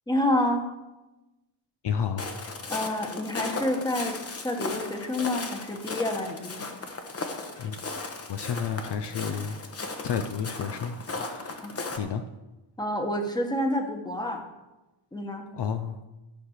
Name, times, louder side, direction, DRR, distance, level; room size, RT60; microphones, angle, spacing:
voice 1, 0.1-0.6 2.7-4.2 4.4-6.7 11.6-11.7 12.8-14.4 15.1-15.4, left 1 dB, 10° left, 3 dB, 1.3 m, -28 dB
voice 2, 1.8-2.3 7.6-7.8 8.3-9.6 10.0-12.2 15.5-16.0, left 7 dB, 55° left, 8 dB, 0.7 m, -31 dB
Walk footsteps, 2.2-12.0, left 3 dB, 30° left, 1.1 m, -36 dB
14.0 x 5.8 x 6.5 m, 1.0 s
wide cardioid pair, 160°, 50 cm